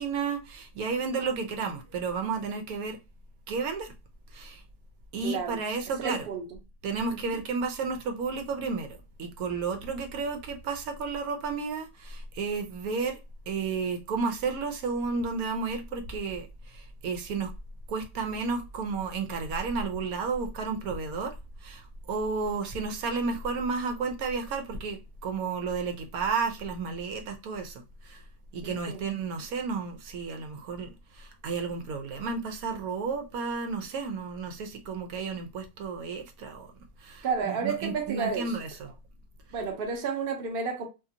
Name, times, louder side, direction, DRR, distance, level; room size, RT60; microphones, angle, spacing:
voice 1, 0.0-3.0 3.5-3.9 4.3-4.6 5.1-6.3 6.8-8.9 9.2-13.2 13.5-17.5 17.9-21.3 21.6-28.2 28.5-36.7 37.0-38.9, right 4 dB, 80° right, 1.1 m, -32 dB
voice 2, 5.2-5.6 6.0-6.5 7.1-7.4 28.6-29.0 37.2-38.6 39.5-40.8, right 5 dB, 50° right, 0.8 m, -31 dB
2.7 x 2.5 x 2.6 m
omnidirectional pair, 1.6 m